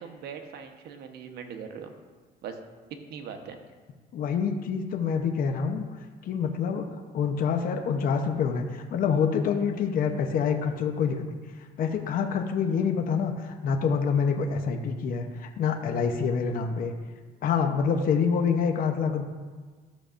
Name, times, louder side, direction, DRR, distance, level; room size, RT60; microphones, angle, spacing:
voice 1, 0.0-1.9 2.4-2.6 3.1-3.6, right 7 dB, 75° right, 5 dB, 1.0 m, -40 dB
voice 2, 4.1-5.9 6.2-11.2 11.8-16.9 17.4-19.2, left 6 dB, 55° left, 4 dB, 0.8 m, -26 dB
13.5 x 6.6 x 2.5 m, 1.4 s
cardioid pair, 110°, 17 cm